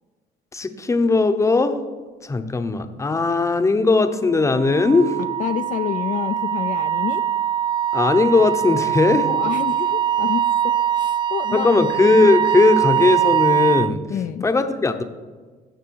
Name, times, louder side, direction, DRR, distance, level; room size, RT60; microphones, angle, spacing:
voice 1, 0.5-1.8 2.2-5.1 7.9-9.3 11.5-14.0 14.4-15.0, left 3 dB, 15° left, 9 dB, 0.8 m, -18 dB
Wind instrument woodwind instrument, 4.5-13.9, right 10 dB, 30° right, 0.3 m, -22 dB
voice 2, 5.4-7.2 9.2-11.8 14.1-14.4, left 9 dB, 50° left, 8 dB, 0.4 m, -28 dB
15.5 x 6.0 x 4.7 m, 1.4 s
cardioid pair, 110°, 17 cm